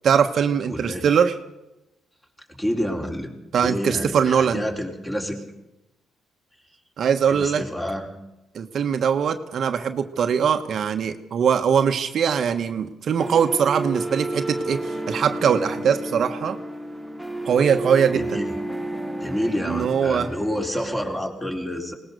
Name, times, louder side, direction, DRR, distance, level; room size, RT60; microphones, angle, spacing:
voice 1, 0.0-1.4 3.5-4.6 7.0-7.6 8.5-16.6 17.4-18.4 19.6-20.3, right 7 dB, 60° right, 7 dB, 1.2 m, -21 dB
voice 2, 0.7-1.0 2.6-3.3 3.6-5.4 7.3-8.1 18.1-18.6 19.2-21.9, equal, 15° left, 1 dB, 4.2 m, -28 dB
sound 1, 13.2-21.2, right 1 dB, 5° right, 1.3 m, -31 dB
20.5 x 19.0 x 6.7 m, 0.94 s
cardioid pair, 90°, 0 cm